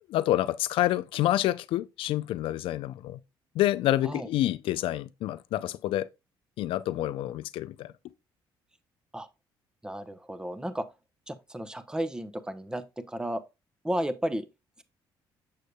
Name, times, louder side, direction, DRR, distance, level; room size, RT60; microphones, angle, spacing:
voice 1, 0.1-3.2 3.5-6.1 6.6-7.9, left 14 dB, 75° left, 0.4 m, -28 dB
voice 2, 9.8-10.8 11.3-13.4 13.8-14.5, right 1 dB, 10° right, 0.7 m, -33 dB
6.6 x 6.5 x 2.2 m
cardioid pair, 85°, 9 cm